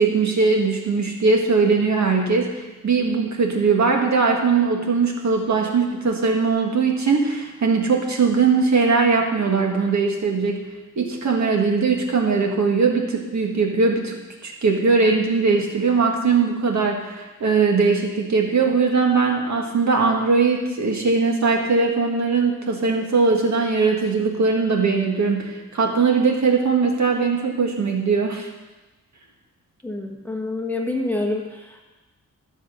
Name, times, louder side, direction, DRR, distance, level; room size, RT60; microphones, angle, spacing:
voice 1, 0.0-10.7 10.9-14.2 14.4-28.5, right 4 dB, 60° right, 1 dB, 1.8 m, -20 dB
voice 2, 29.8-31.8, left 2 dB, 5° left, 0 dB, 1.4 m, -27 dB
13.5 x 7.2 x 5.6 m, 1.1 s
wide cardioid pair, 140°, 31 cm